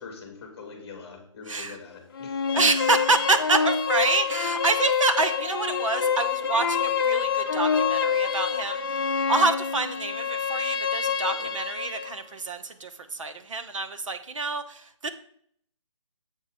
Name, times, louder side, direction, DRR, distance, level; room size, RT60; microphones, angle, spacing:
voice 1, 0.0-2.4 11.2-11.5, left 5 dB, 15° left, 3 dB, 1.8 m, -43 dB
voice 2, 1.5-1.8 2.5-15.1, right 3 dB, 70° right, 7 dB, 1.0 m, -27 dB
sound 1, 2.2-12.1, left 6 dB, 45° left, 0.7 m, -26 dB
7.4 x 5.1 x 4.8 m, 0.64 s
hypercardioid pair, 165°, 17 cm